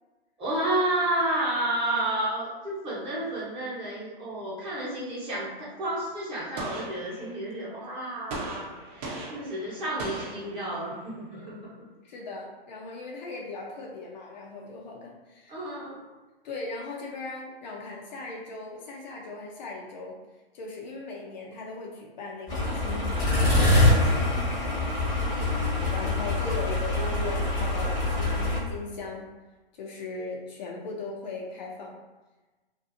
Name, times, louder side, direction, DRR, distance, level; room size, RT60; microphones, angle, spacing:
voice 1, 0.4-11.5 15.5-16.0 25.3-26.2, right 1 dB, 15° right, -8 dB, 0.9 m, -31 dB
Gunshot gunfire, 6.6-7.6 8.3-11.1, right 2 dB, 40° right, 0.7 m, -39 dB
voice 2, 11.3-11.6 12.0-15.8 16.4-20.2 20.5-24.5 25.9-29.3 29.7-32.0, left 3 dB, 50° left, -1 dB, 0.5 m, -38 dB
sound 1, 22.5-28.6, left 1 dB, 10° left, 0.9 m, -24 dB
2.6 x 2.5 x 2.6 m, 1.2 s
hypercardioid pair, 140°, 30 cm